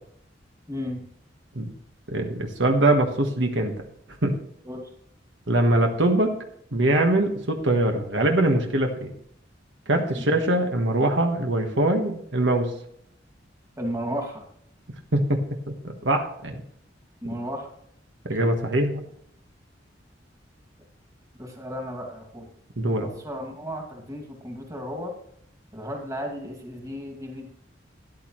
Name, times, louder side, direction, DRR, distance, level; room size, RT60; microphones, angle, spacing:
voice 1, 0.7-1.0 4.6-4.9 10.1-10.3 13.8-14.4 17.2-17.7 21.4-22.5 23.0-25.2 25.7-27.5, equal, 20° right, 1 dB, 2.4 m, -34 dB
voice 2, 2.1-3.7 4.2-4.3 5.5-6.3 6.7-9.1 9.9-12.7 15.1-15.4 16.0-16.6 18.3-19.0 22.8-23.1, right 1 dB, 70° right, 3 dB, 1.4 m, -22 dB
13.0 x 11.0 x 3.1 m, 0.69 s
head